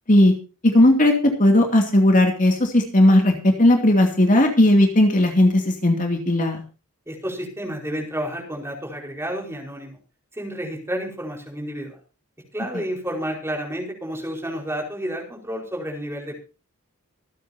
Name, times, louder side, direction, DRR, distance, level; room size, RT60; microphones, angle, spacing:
voice 1, 0.6-6.6, left 1 dB, 35° left, 3 dB, 2.6 m, -16 dB
voice 2, 7.1-10.0 10.3-12.0 12.5-16.4, equal, 10° right, 1 dB, 4.8 m, -30 dB
25.5 x 9.3 x 2.8 m, 0.33 s
head